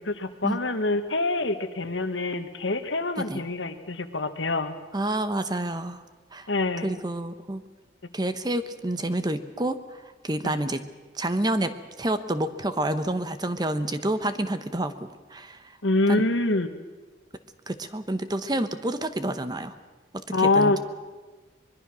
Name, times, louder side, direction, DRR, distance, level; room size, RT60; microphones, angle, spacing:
voice 1, 0.0-4.8 6.5-6.9 10.4-10.6 15.8-16.7 20.3-20.8, left 2 dB, 80° left, 8 dB, 1.6 m, -25 dB
voice 2, 4.9-6.0 6.3-6.5 6.8-7.6 8.1-10.8 11.1-15.7 16.1-16.2 17.7-19.7 20.1-20.8, right 1 dB, 20° right, 10 dB, 1.0 m, -29 dB
24.0 x 21.5 x 6.2 m, 1.3 s
head